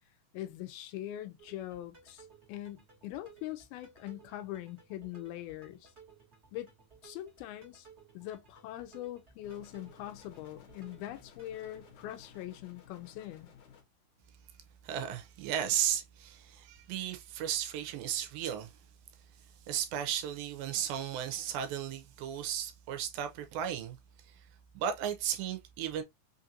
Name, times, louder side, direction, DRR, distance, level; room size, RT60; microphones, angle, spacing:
voice 1, 0.3-5.9 6.5-6.7 7.0-7.9 8.1-13.5, left 13 dB, 85° left, 2.5 m, -42 dB
sound 1, 1.4-12.4, right 5 dB, 35° right, 1.0 m, -59 dB
sound 2, 9.4-13.8, left 8 dB, 65° left, 2.2 m, -56 dB
voice 2, 14.8-18.8 19.7-24.0 24.3-24.5 24.7-26.0, right 10 dB, 80° right, 2.4 m, -35 dB
5.8 x 2.5 x 2.7 m
omnidirectional pair, 4.4 m